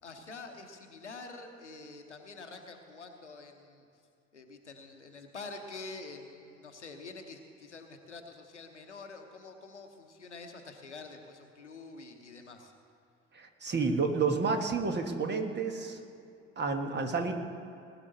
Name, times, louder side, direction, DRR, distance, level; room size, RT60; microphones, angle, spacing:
voice 1, 0.0-3.9 4.3-12.7, left 3 dB, 85° left, 5 dB, 0.9 m, -47 dB
voice 2, 13.3-16.0 16.6-17.3, right 4 dB, 30° right, 5 dB, 1.5 m, -30 dB
19.5 x 11.0 x 4.1 m, 2.6 s
figure-of-eight pair, 50°, 34 cm